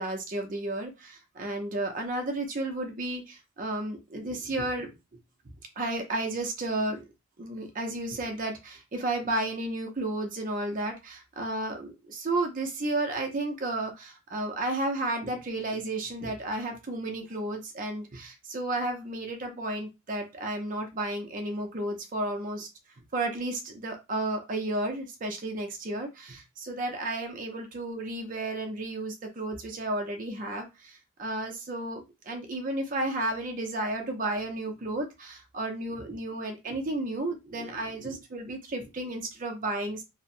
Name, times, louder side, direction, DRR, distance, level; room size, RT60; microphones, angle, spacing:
voice 1, 0.0-4.9 5.8-7.0 7.4-22.7 23.1-40.0, right 2 dB, 40° right, 0.5 m, -32 dB
2.9 x 2.0 x 2.6 m
head